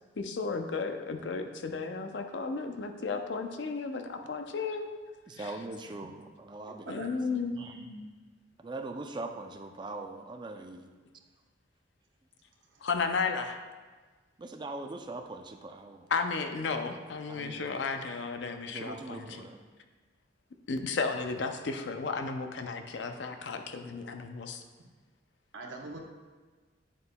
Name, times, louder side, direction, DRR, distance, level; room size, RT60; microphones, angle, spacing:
voice 1, 0.2-5.0 5.4-5.5 6.7-7.5 12.8-13.6 16.1-19.4 20.7-24.6, left 4 dB, 65° left, 6 dB, 0.5 m, -34 dB
voice 2, 5.3-7.2 7.6-7.7 8.6-10.9 14.4-16.1 17.3-17.8 18.7-19.6, right 2 dB, 25° right, 5 dB, 0.4 m, -41 dB
voice 3, 6.9-8.0 25.5-26.0, right 2 dB, 75° right, 0 dB, 0.9 m, -44 dB
8.7 x 6.7 x 2.2 m, 1.4 s
head